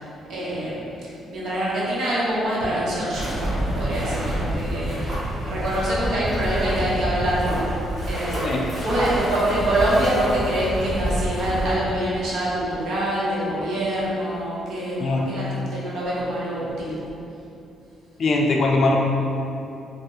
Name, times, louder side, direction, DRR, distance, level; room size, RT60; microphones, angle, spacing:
voice 1, 0.3-0.7 1.3-7.8 8.1-8.4 8.8-17.0, right 1 dB, 75° right, -7 dB, 0.8 m, -25 dB
sound 1, 3.1-11.8, right 1 dB, 40° right, 1.1 m, -27 dB
voice 2, 15.0-15.3 18.2-19.0, left 2 dB, 55° left, 0 dB, 0.4 m, -21 dB
3.3 x 2.0 x 2.7 m, 2.8 s
cardioid pair, 90°, 0 cm